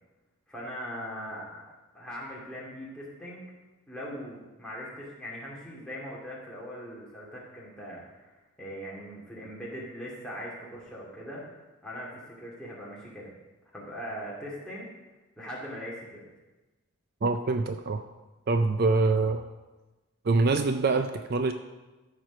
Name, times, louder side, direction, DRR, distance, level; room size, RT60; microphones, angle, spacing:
voice 1, 0.5-1.6 1.9-3.5 3.9-11.4 11.8-13.3 13.7-14.9 15.4-16.3, equal, 5° left, -6 dB, 2.4 m, -40 dB
voice 2, 17.2-18.0 18.5-19.4 20.2-21.5, right 3 dB, 50° right, 7 dB, 0.4 m, -25 dB
13.5 x 4.7 x 5.9 m, 1.1 s
head